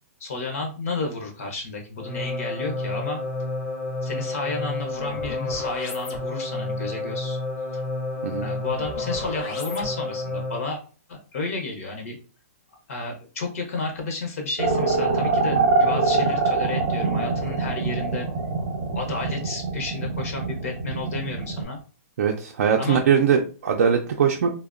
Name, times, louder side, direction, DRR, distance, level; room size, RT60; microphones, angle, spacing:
voice 1, 0.2-3.2 4.0-7.4 7.7-7.8 8.4-10.8 11.1-12.2 12.9-18.3 18.9-21.8 22.8-23.0, left 3 dB, 65° left, 2 dB, 0.7 m, -32 dB
sound 1, 2.0-10.8, left 2 dB, 25° left, 0.4 m, -30 dB
sound 2, 14.6-21.6, right 4 dB, 30° right, 0.7 m, -23 dB
voice 2, 22.2-24.5, right 7 dB, 60° right, 1 dB, 0.4 m, -21 dB
2.7 x 2.0 x 2.4 m, 0.36 s
hypercardioid pair, 170°, 8 cm